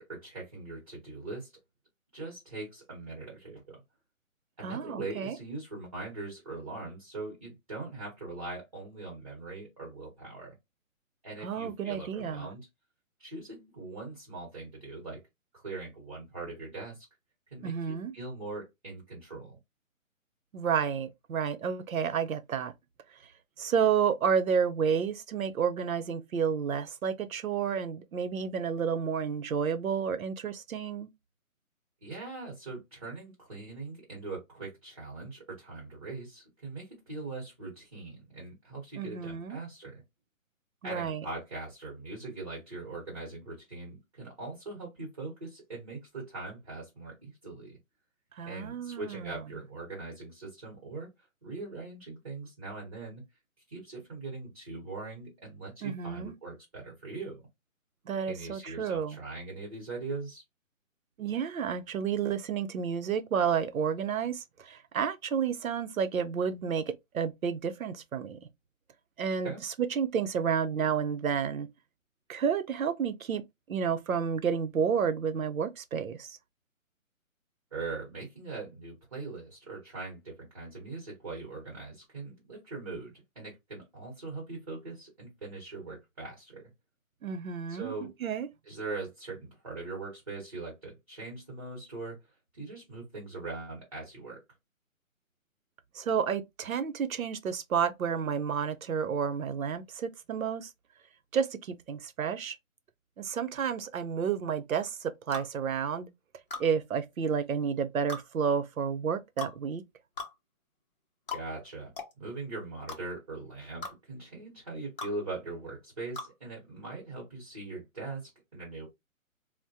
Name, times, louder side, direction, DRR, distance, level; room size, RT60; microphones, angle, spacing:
voice 1, 0.0-1.5 2.1-3.8 4.6-10.5 11.2-12.7 13.2-15.2 15.5-17.0 17.5-19.6 32.0-40.0 40.8-47.8 48.5-51.1 51.4-53.2 53.7-57.4 58.2-60.4 69.4-69.6 77.7-86.7 87.7-88.1 88.6-92.2 92.5-94.4 111.3-111.9 112.2-118.9, right 3 dB, 25° right, 1.0 m, -41 dB
voice 2, 4.6-5.4 11.4-12.5 17.6-18.1 20.5-22.7 23.6-31.1 39.0-39.6 40.8-41.3 48.3-49.4 55.8-56.3 58.1-59.2 61.2-68.4 69.2-69.5 69.9-71.7 72.3-73.4 73.7-76.4 87.2-88.5 95.9-100.7 101.3-102.6 103.2-106.1 106.6-109.8, right 7 dB, 75° right, 0.7 m, -31 dB
sound 1, 105.3-105.5 106.5-106.7 108.1-108.3 109.4-109.6 110.2-110.3 111.3-111.4 112.0-112.1 112.9-113.0 113.8-114.0 115.0-115.1 116.2-116.3, left 3 dB, 40° left, 0.8 m, -38 dB
3.5 x 2.2 x 2.7 m
hypercardioid pair, 175°, 41 cm